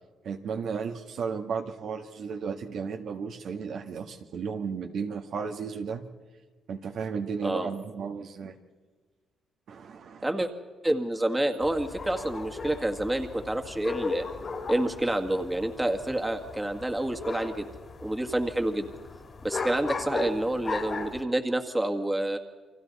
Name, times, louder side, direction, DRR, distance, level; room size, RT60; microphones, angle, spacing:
voice 1, 0.2-6.0 6.7-8.6 9.7-10.3, right 6 dB, 65° right, 4 dB, 1.6 m, -34 dB
voice 2, 10.8-14.2 14.7-17.7 18.0-18.9 19.4-22.4, right 1 dB, 10° right, 5 dB, 1.9 m, -28 dB
sound 1, 11.6-21.2, left 4 dB, 45° left, 3.1 m, -37 dB
29.5 x 24.0 x 4.2 m, 1.4 s
cardioid pair, 90°, 0 cm